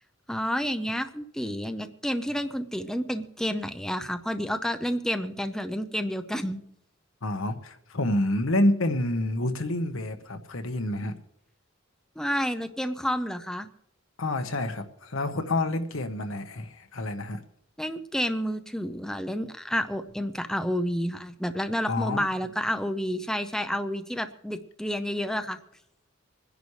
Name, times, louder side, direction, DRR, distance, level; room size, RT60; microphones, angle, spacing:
voice 1, 0.3-6.6 12.2-13.7 17.8-25.6, equal, 5° left, 8 dB, 0.6 m, -30 dB
voice 2, 7.2-11.1 14.2-17.4 21.9-22.3, left 1 dB, 85° left, 7 dB, 1.3 m, -28 dB
26.0 x 10.5 x 3.3 m, 0.75 s
head